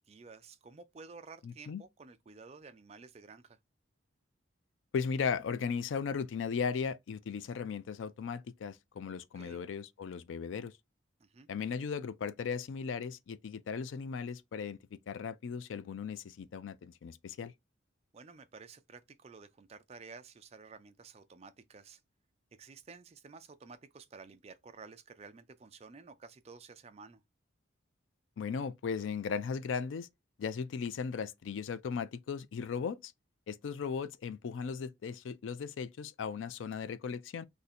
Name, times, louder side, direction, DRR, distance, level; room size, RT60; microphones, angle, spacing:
voice 1, 0.1-3.6 9.4-9.6 11.2-11.5 18.1-22.0 22.6-27.2, right 4 dB, 35° right, 0.4 m, -52 dB
voice 2, 1.4-1.8 4.9-10.7 11.5-17.5 28.4-30.1 30.4-33.1 33.5-37.5, left 6 dB, 80° left, 0.4 m, -37 dB
2.7 x 2.6 x 4.1 m
head